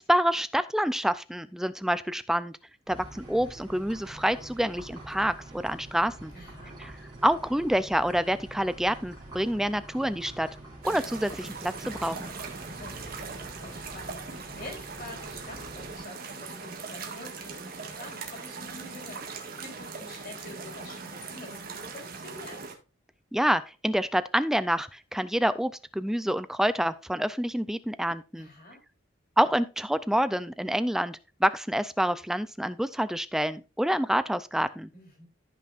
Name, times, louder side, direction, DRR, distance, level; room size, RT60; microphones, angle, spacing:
voice 1, 0.0-2.6 2.9-6.3 6.8-6.9 7.2-10.5 10.8-12.3 23.3-28.5 29.4-34.9, equal, ahead, 14 dB, 0.3 m, -27 dB
sound 1, 2.9-16.0, right 1 dB, 20° right, 4.1 m, -46 dB
voice 2, 6.3-6.8 12.8-22.6 28.3-28.8 34.9-35.3, left 1 dB, 45° left, 1 dB, 3.5 m, -47 dB
sound 2, 10.8-22.7, right 4 dB, 50° right, 1.7 m, -40 dB
14.5 x 5.9 x 2.5 m, 0.30 s
head